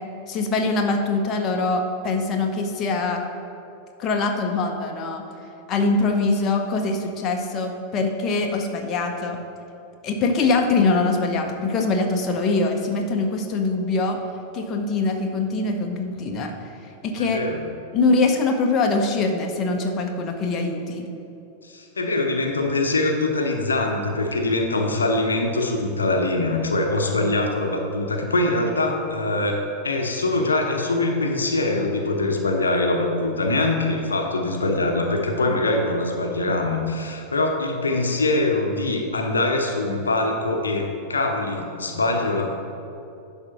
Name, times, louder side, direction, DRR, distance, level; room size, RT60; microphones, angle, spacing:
voice 1, 0.3-3.3 4.0-5.3 5.7-9.4 10.0-14.2 14.5-16.5 17.0-17.4 17.9-21.1, left 3 dB, 30° left, 3 dB, 0.8 m, -23 dB
voice 2, 17.2-17.6 21.6-29.6 29.8-42.5, left 2 dB, 75° left, 3 dB, 0.8 m, -23 dB
10.5 x 3.6 x 5.7 m, 2.8 s
figure-of-eight pair, 90°, 0 cm